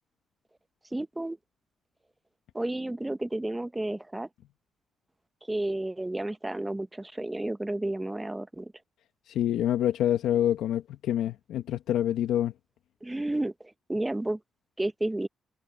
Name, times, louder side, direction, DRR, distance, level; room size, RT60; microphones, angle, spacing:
voice 1, 0.9-1.4 2.5-4.3 5.5-8.7 13.0-14.4 14.8-15.3, right 1 dB, 10° right, 1.0 m, -31 dB
voice 2, 9.3-12.5, left 11 dB, 80° left, 1.3 m, -26 dB
cardioid pair, 90°, 0 cm